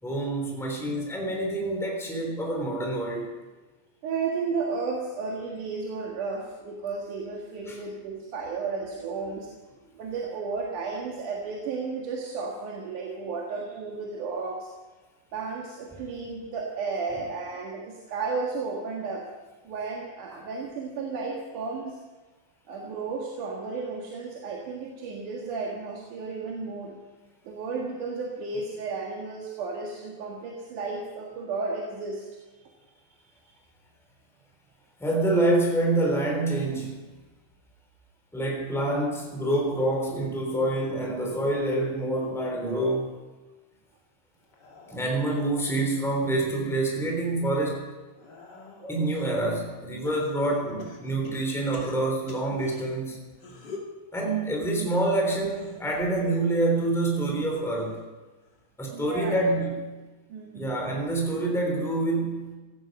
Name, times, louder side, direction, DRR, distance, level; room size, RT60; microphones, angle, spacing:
voice 1, 0.0-3.3 7.7-7.8 35.0-37.0 38.3-43.2 44.9-47.9 48.9-53.3 54.1-58.0 58.8-59.9 60.5-62.6, right 2 dB, ahead, 0 dB, 3.1 m, -27 dB
voice 2, 4.0-9.5 10.0-14.7 15.3-19.3 19.6-22.0 22.7-27.0 27.4-32.3 58.9-59.5 60.3-60.7, right 4 dB, 85° right, -2 dB, 3.3 m, -33 dB
sound 1, 44.4-46.7 47.2-49.2 50.1-52.8 53.3-54.0 55.2-58.1 58.4-58.8 60.0-60.1, left 3 dB, 35° left, 2.7 m, -47 dB
17.0 x 14.5 x 5.4 m, 1.2 s
omnidirectional pair, 3.5 m